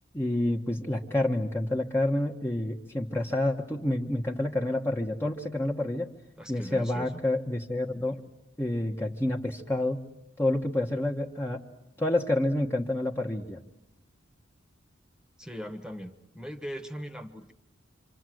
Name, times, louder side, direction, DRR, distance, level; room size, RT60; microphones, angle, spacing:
voice 1, 0.1-6.1 6.5-8.2 8.6-10.0 10.4-11.6 12.0-13.6, left 1 dB, 15° left, 1 dB, 1.2 m, -28 dB
voice 2, 6.4-7.2 15.4-17.5, equal, 5° right, 8 dB, 1.4 m, -40 dB
27.0 x 26.0 x 7.8 m, 0.84 s
head